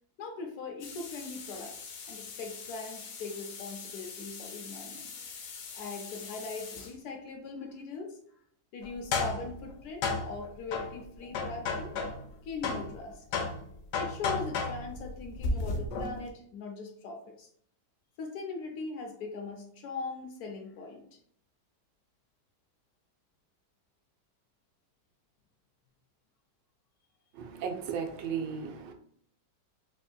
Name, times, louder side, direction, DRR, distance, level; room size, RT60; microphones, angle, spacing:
voice 1, 0.2-1.8 2.1-5.1 5.7-8.2 8.7-12.0 12.4-13.2 14.0-17.5 18.2-21.2, left 4 dB, 70° left, 3 dB, 1.0 m, -40 dB
sound 1, 0.8-6.9 8.8-12.3 12.6-16.3, left 4 dB, 90° left, 1.4 m, -36 dB
voice 2, 27.3-28.9, right 6 dB, 90° right, 4 dB, 1.3 m, -35 dB
4.3 x 2.6 x 2.3 m, 0.64 s
omnidirectional pair, 1.9 m